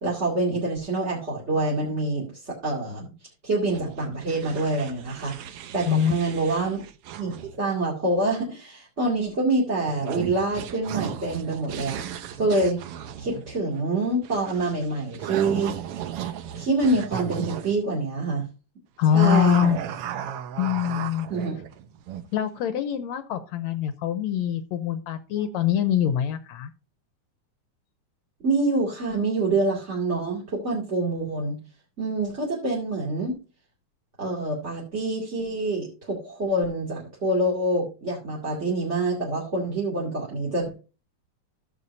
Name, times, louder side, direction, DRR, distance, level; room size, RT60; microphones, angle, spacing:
voice 1, 0.0-3.1 3.4-6.8 7.2-12.0 12.4-12.8 13.2-15.8 16.5-18.4 19.1-19.7 21.3-21.6 28.4-31.6 32.0-33.4 34.2-40.7, right 2 dB, 25° right, -4 dB, 2.5 m, -26 dB
sound 1, 3.7-7.6 9.9-17.7 19.2-22.3, right 10 dB, 70° right, 1.4 m, -35 dB
voice 2, 19.0-19.8 20.6-21.3 22.3-26.7, left 9 dB, 75° left, 11 dB, 1.9 m, -24 dB
15.0 x 7.3 x 2.7 m, 0.32 s
omnidirectional pair, 3.5 m